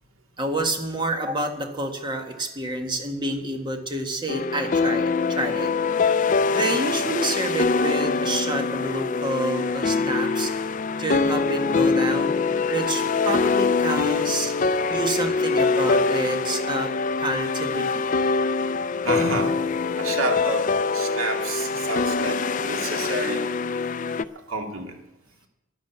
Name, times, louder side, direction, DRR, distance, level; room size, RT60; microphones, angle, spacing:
voice 1, 0.4-5.7 6.5-10.5 11.0-12.4 12.7-14.5 14.9-16.9 17.2-18.1, right 1 dB, 20° right, 4 dB, 1.7 m, -28 dB
sound 1, 4.3-24.2, left 4 dB, 40° left, 0.4 m, -24 dB
voice 2, 19.0-19.6 20.0-23.4 24.5-25.0, right 2 dB, 75° right, 2 dB, 2.3 m, -29 dB
11.5 x 11.0 x 8.1 m, 0.93 s
head